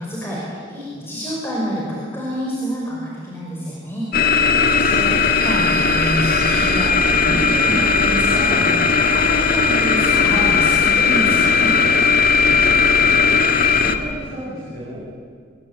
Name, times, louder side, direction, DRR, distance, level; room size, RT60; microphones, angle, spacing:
voice 1, 0.0-4.1 4.7-11.8, equal, 15° left, -5 dB, 5.4 m, -27 dB
sound 1, 4.1-14.0, left 5 dB, 50° left, 1.7 m, -17 dB
voice 2, 4.5-4.9 12.5-13.2 13.7-15.1, equal, 50° right, -7 dB, 6.2 m, -34 dB
24.5 x 22.0 x 8.8 m, 2.2 s
head